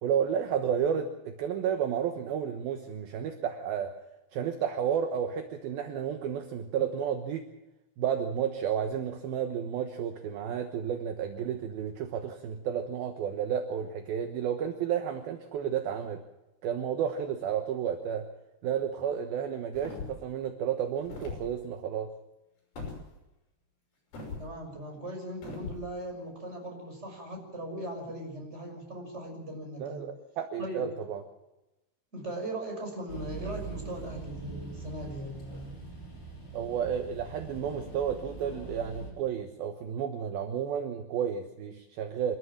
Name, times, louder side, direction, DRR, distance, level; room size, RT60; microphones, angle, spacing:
voice 1, 0.0-3.9 4.3-7.5 8.0-16.2 16.6-18.3 18.6-22.1 29.8-31.2 36.5-42.4, right 8 dB, 70° right, 6 dB, 2.5 m, -32 dB
sound 1, 19.7-20.3 21.0-21.5 22.8-23.0 24.1-24.5 25.4-25.8, left 3 dB, 50° left, 7.9 m, -39 dB
voice 2, 24.4-30.1 30.6-30.8 32.1-36.0, right 1 dB, 15° right, 2 dB, 5.9 m, -39 dB
sound 2, 33.1-39.1, right 4 dB, 25° left, 6.6 m, -43 dB
26.0 x 14.0 x 7.4 m, 0.97 s
omnidirectional pair, 5.5 m